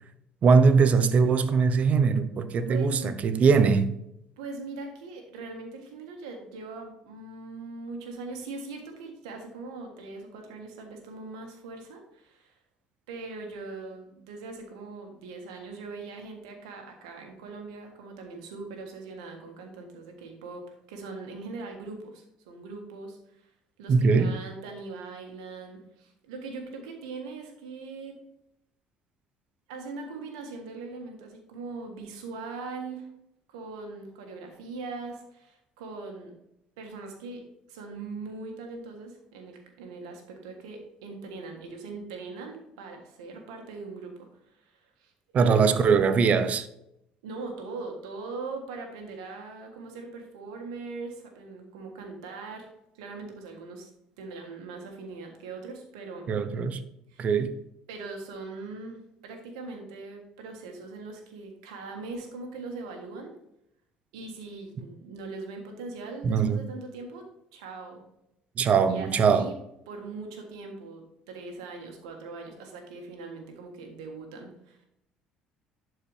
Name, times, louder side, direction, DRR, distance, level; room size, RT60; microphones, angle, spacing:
voice 1, 0.4-3.9 23.9-24.3 45.3-46.7 56.3-56.8 57.2-57.5 66.2-66.6 68.6-69.5, right 5 dB, 50° right, 0.8 m, -21 dB
voice 2, 2.7-3.1 4.4-12.5 13.1-23.5 23.8-28.2 29.7-33.1 33.5-36.3 36.8-45.8 47.2-52.7 52.9-53.9 54.2-56.3 57.1-57.3 57.9-63.3 64.1-67.2 67.5-68.0 68.9-69.6 69.9-74.9, right 3 dB, 90° right, 1.5 m, -41 dB
11.5 x 4.7 x 3.3 m
supercardioid pair, 70°, 3 cm